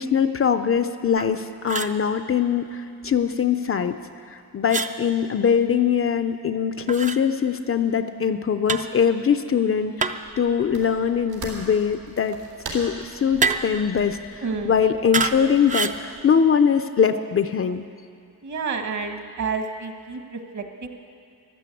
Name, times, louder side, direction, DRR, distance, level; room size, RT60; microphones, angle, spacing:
voice 1, 0.0-4.0 4.3-12.4 12.7-17.9, left 7 dB, 40° left, 9 dB, 0.5 m, -22 dB
sound 1, 1.2-1.3 1.7-2.0 4.7-4.9 6.9-7.2 8.7-8.9 10.0-10.4 13.4-13.8 15.1-15.4 15.7-16.0, right 4 dB, 20° right, 0.4 m, -26 dB
sound 2, 10.2-16.2, right 3 dB, 90° right, 3.7 m, -42 dB
voice 2, 14.4-14.8 18.4-20.9, right 5 dB, 50° right, 5 dB, 1.4 m, -30 dB
14.5 x 11.5 x 8.3 m, 2.5 s
wide cardioid pair, 160°, 37 cm